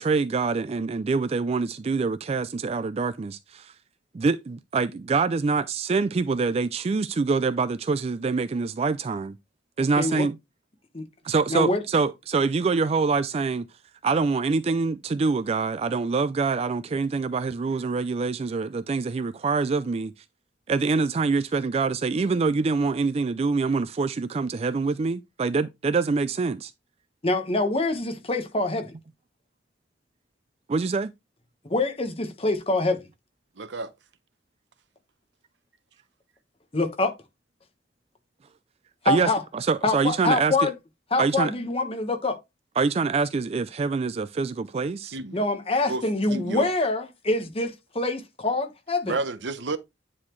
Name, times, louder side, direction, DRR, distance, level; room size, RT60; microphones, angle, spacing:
voice 1, 0.0-3.7 4.1-9.4 9.8-10.4 11.2-13.7 14.0-20.1 20.7-26.7 30.7-31.1 39.0-40.7 41.2-41.5 42.8-45.2, right 4 dB, 35° right, 0.3 m, -25 dB
voice 2, 10.0-10.3 10.9-11.0 11.5-11.8 27.2-28.9 31.6-33.0 36.7-37.1 39.0-39.4 39.8-40.7 41.1-42.4 45.3-47.7 47.9-49.2, left 2 dB, 35° left, 1.3 m, -25 dB
voice 3, 33.6-33.9 45.1-45.4 45.9-46.0 46.3-46.7 49.1-49.8, right 3 dB, 90° right, 0.8 m, -30 dB
9.8 x 4.1 x 3.1 m
head